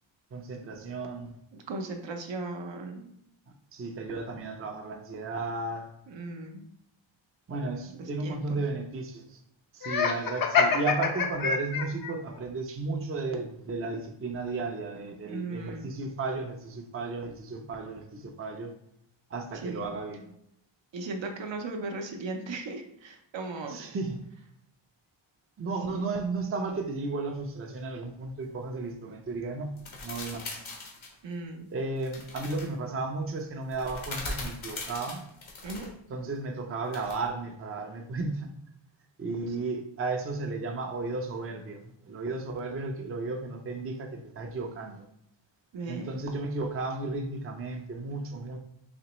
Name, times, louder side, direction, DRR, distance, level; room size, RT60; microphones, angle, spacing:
voice 1, 0.3-1.4 3.7-5.9 7.5-9.4 9.7-18.7 19.3-20.3 23.7-24.2 25.6-29.8 30.0-30.6 31.7-35.2 36.1-38.5 39.2-45.0 45.9-48.6, right 3 dB, 30° right, 3 dB, 0.5 m, -34 dB
voice 2, 1.5-3.1 6.1-6.7 7.9-8.6 15.2-15.9 19.6-20.0 20.9-23.8 25.9-26.0 31.2-31.7 35.6-36.0 45.7-46.5, right 3 dB, 70° right, 4 dB, 0.7 m, -37 dB
Laughter, 9.8-12.1, left 5 dB, 50° left, 0.5 m, -26 dB
sound 1, 29.8-31.1 32.0-32.7 33.7-35.9 36.9-37.3, left 2 dB, 80° left, 1.1 m, -40 dB
4.2 x 2.9 x 3.0 m, 0.74 s
wide cardioid pair, 120°, 47 cm